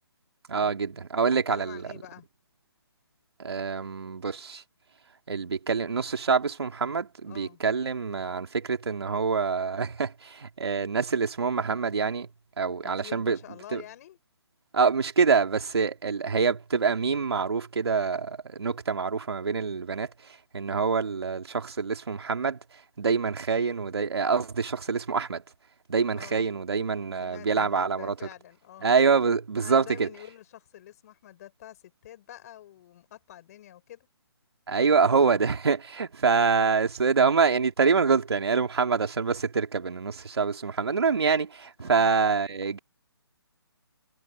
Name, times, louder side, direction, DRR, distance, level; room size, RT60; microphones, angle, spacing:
voice 1, 0.5-1.8 3.4-4.6 5.3-12.3 12.6-13.4 13.7-13.8 14.7-25.4 25.9-28.1 28.8-30.1 34.7-42.8, right 5 dB, 70° right, 2.7 m, -26 dB
voice 2, 1.5-2.3 3.8-3.9 7.2-7.6 12.8-14.2 26.1-26.5 27.2-28.9 29.6-34.1 41.8-42.2, left 12 dB, 35° left, 5.2 m, -47 dB
hypercardioid pair, 150°, 14 cm